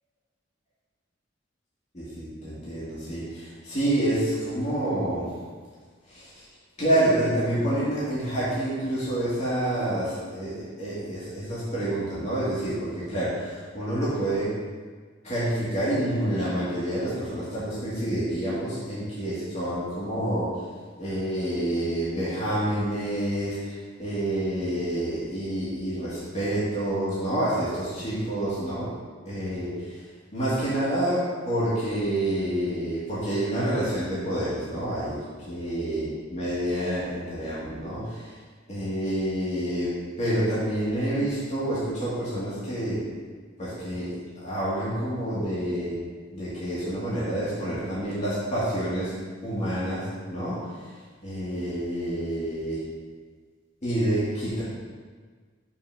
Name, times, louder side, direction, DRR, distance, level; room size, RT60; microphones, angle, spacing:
voice 1, 1.9-5.3 6.1-6.4 6.8-14.5 15.2-20.5 21.0-28.9 29.3-30.0 30.3-35.2 35.5-38.3 38.7-43.0 43.6-46.0 46.3-49.1 49.4-50.9 51.2-52.8 53.8-54.6, right 1 dB, 35° left, -10 dB, 2.2 m, -28 dB
5.7 x 4.6 x 5.9 m, 1.5 s
head